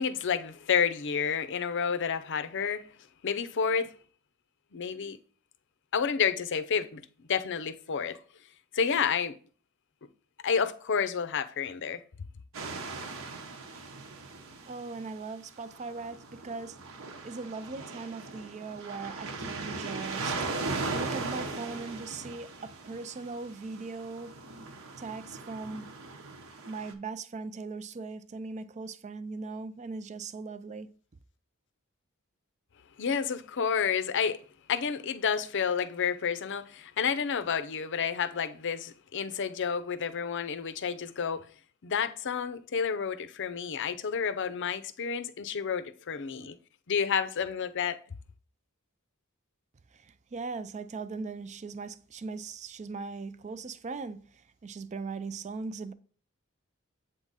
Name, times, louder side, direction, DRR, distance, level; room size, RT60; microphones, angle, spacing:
voice 1, 0.0-2.9 3.2-3.9 4.7-5.2 5.9-8.2 8.7-9.3 10.4-12.0 33.0-41.5 41.8-46.6 46.9-48.0, left 6 dB, 60° left, 0.6 m, -30 dB
sound 1, 12.5-15.1 15.7-26.9, right 3 dB, 65° right, 1.0 m, -39 dB
voice 2, 14.6-16.8 17.2-20.5 20.9-24.3 25.0-25.9 26.7-30.9 49.9-54.2 54.6-55.9, right 4 dB, 35° right, 0.4 m, -39 dB
7.9 x 3.6 x 4.0 m
head